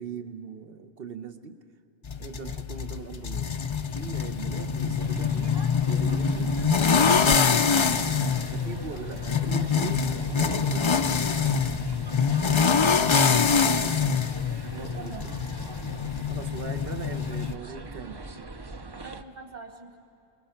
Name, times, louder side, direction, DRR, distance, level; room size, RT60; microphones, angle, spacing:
voice 1, 0.0-1.6 2.2-3.6 3.9-5.6 5.8-7.4 7.7-8.0 8.5-11.5 14.7-15.3 16.3-18.2, right 6 dB, 65° right, 9 dB, 1.2 m, -40 dB
sound 1, 2.0-17.5, left 6 dB, 40° left, 0.5 m, -25 dB
sound 2, 5.0-19.2, right 3 dB, 30° right, 0.6 m, -42 dB
voice 2, 12.7-14.2 14.9-15.5 17.0-17.3 19.0-20.0, right 4 dB, 45° right, 4 dB, 2.1 m, -45 dB
28.0 x 20.5 x 5.8 m, 2.6 s
omnidirectional pair, 1.0 m